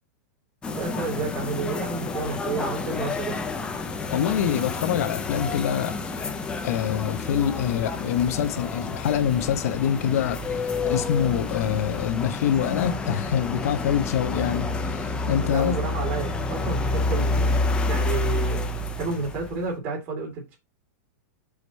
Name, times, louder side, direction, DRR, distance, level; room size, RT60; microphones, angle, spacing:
sound 1, 0.6-19.7, left 3 dB, 10° left, 0.7 m, -29 dB
voice 1, 0.8-3.4 15.5-17.5 17.9-18.7 19.0-20.6, right 4 dB, 35° right, 2.6 m, -31 dB
voice 2, 4.1-6.3 6.6-15.7, left 9 dB, 60° left, 1.0 m, -25 dB
5.1 x 5.0 x 4.1 m
supercardioid pair, 160°, 9 cm